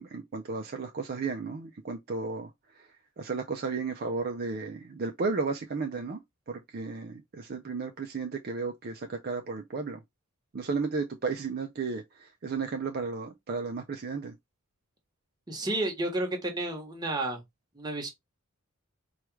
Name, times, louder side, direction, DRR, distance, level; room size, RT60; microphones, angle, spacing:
voice 1, 0.0-2.5 2.8-2.9 3.2-6.2 6.5-10.0 10.5-14.3, right 4 dB, 45° right, 0.5 m, -33 dB
voice 2, 15.5-17.4 17.7-18.1, right 2 dB, 20° right, 1.1 m, -31 dB
4.6 x 2.3 x 3.1 m
head